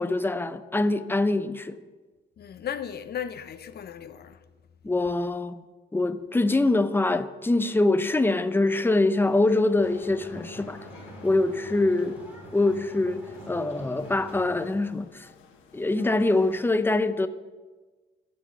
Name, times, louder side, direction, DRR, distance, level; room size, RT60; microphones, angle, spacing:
voice 1, 0.0-1.8 4.8-5.6 5.9-10.9 11.2-12.2 12.5-15.3 15.7-17.3, left 2 dB, 10° left, 0.6 m, -24 dB
voice 2, 2.4-4.4, left 9 dB, 55° left, 0.8 m, -36 dB
sound 1, 9.2-16.6, left 5 dB, 90° left, 1.5 m, -50 dB
sound 2, 9.7-14.7, right 1 dB, 10° right, 3.2 m, -46 dB
15.0 x 6.2 x 6.1 m
cardioid pair, 90°, 20 cm